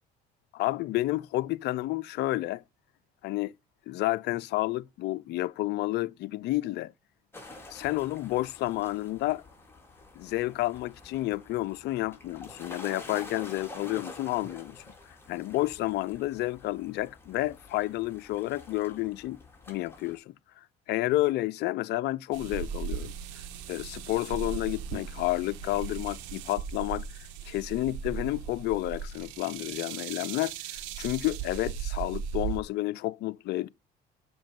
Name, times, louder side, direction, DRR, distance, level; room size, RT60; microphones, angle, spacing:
voice 1, 0.5-2.6 3.2-3.5 3.9-6.9 7.7-9.4 10.2-14.8 15.3-19.4 19.7-23.1 23.7-33.7, left 17 dB, 60° left, 0.5 m, -30 dB
sound 1, 7.3-20.2, left 3 dB, 10° left, 3.7 m, -48 dB
sound 2, 22.3-32.6, right 8 dB, 75° right, 1.5 m, -37 dB
7.3 x 5.9 x 5.2 m
supercardioid pair, 75°, 20 cm